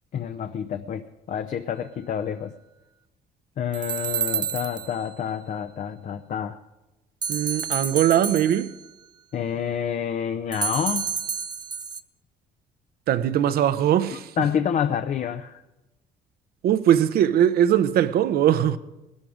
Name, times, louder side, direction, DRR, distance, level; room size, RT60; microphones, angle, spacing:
voice 1, 0.1-2.5 3.6-6.6 9.3-11.1 14.1-15.6, left 8 dB, 50° left, 0.7 m, -28 dB
sound 1, 3.7-5.1 7.2-8.9 10.5-12.0, right 7 dB, 25° right, 0.6 m, -29 dB
voice 2, 7.3-8.7 13.1-14.3 16.6-18.8, right 10 dB, 65° right, 0.8 m, -20 dB
19.5 x 12.5 x 5.1 m
cardioid pair, 110°, 17 cm